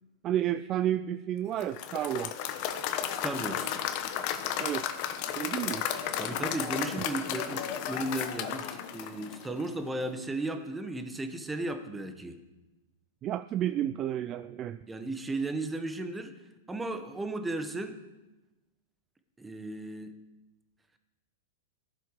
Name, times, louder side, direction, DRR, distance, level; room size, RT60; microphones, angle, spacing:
voice 1, 0.2-2.3 4.6-4.9 5.4-5.8 13.2-14.8, right 11 dB, 30° right, 13 dB, 0.3 m, -31 dB
Applause / Crowd, 1.6-9.8, left 9 dB, 45° left, 1.1 m, -34 dB
voice 2, 3.1-3.7 6.2-12.4 14.9-16.3 16.7-18.0 19.4-20.1, right 2 dB, 10° right, 7 dB, 1.2 m, -35 dB
16.0 x 7.6 x 4.9 m, 1.1 s
hypercardioid pair, 135°, 0 cm